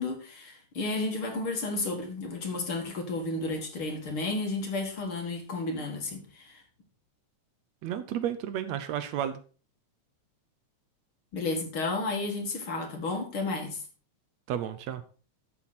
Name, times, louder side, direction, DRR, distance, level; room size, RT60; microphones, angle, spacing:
voice 1, 0.0-6.6 11.3-13.8, left 3 dB, 50° left, 2.6 m, -32 dB
voice 2, 7.8-9.4 14.5-15.0, right 10 dB, 75° right, 2.0 m, -32 dB
13.0 x 7.4 x 4.2 m
omnidirectional pair, 3.3 m